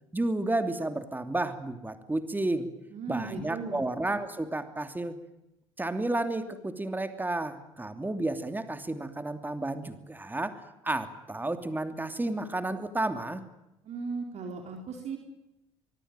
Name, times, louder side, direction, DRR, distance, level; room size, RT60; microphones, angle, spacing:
voice 1, 0.1-2.7 3.1-5.2 5.8-13.4, right 2 dB, 10° right, 8 dB, 2.9 m, -32 dB
voice 2, 2.9-3.8 13.8-15.2, right 4 dB, 50° right, 3 dB, 4.2 m, -37 dB
24.0 x 23.5 x 9.1 m, 0.92 s
figure-of-eight pair, 55°, 15 cm